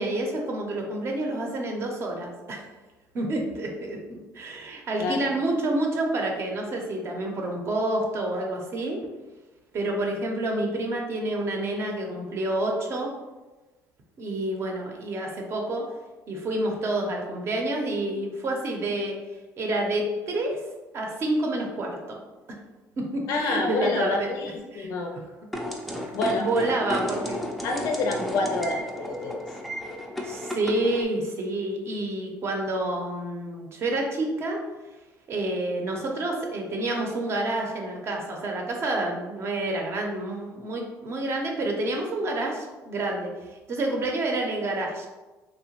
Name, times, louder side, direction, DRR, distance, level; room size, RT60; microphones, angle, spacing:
voice 1, 0.0-2.7 3.1-9.0 9.7-13.1 14.2-15.8 16.3-19.1 19.6-20.6 20.9-22.2 23.0-24.3 24.7-24.9 26.0-26.1 26.4-27.4 30.2-34.6 35.3-45.1, right 2 dB, 45° right, 1 dB, 0.6 m, -28 dB
voice 2, 23.3-25.1 26.1-26.5 27.6-29.4, left 3 dB, 75° left, 3 dB, 0.5 m, -27 dB
sound 1, 25.5-31.0, left 1 dB, ahead, 0.3 m, -33 dB
2.8 x 2.1 x 2.8 m, 1.2 s
cardioid pair, 105°, 6 cm